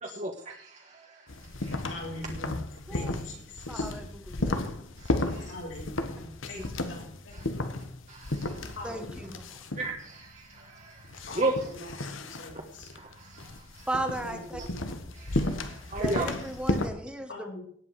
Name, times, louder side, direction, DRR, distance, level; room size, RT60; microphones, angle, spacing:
voice 1, 0.0-1.2 1.6-1.8 5.0-5.5 7.3-7.5 8.1-8.7 9.8-11.5 12.9-13.9 15.2-16.3, right 2 dB, 35° right, 1 dB, 1.3 m, -35 dB
sound 1, 1.3-16.9, left 2 dB, 90° left, 1.4 m, -34 dB
voice 2, 1.9-2.5 2.9-3.9 5.4-7.8 8.7-9.2 11.3-12.9 14.3-14.9 15.3-15.4 17.3-17.6, left 1 dB, 75° left, -2 dB, 6.5 m, -43 dB
voice 3, 3.7-4.6 6.5-6.6 8.8-9.4 13.9-14.6 16.0-17.5, right 1 dB, 5° right, 6 dB, 1.2 m, -35 dB
18.0 x 8.6 x 4.9 m, 0.65 s
head